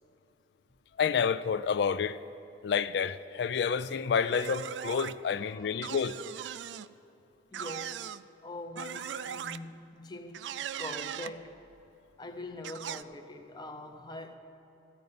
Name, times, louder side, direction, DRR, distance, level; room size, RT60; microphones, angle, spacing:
voice 1, 1.0-2.2 2.6-6.2, left 6 dB, 65° left, 0.3 m, -29 dB
sound 1, 4.3-5.1 5.8-6.9 7.5-8.2 8.8-9.6 10.3-11.3 12.6-13.0, right 9 dB, 75° right, 0.3 m, -39 dB
voice 2, 5.4-5.8 7.5-8.1 8.4-10.5 10.8-11.6 12.2-14.3, left 2 dB, 25° left, 0.6 m, -43 dB
15.0 x 5.2 x 9.4 m
head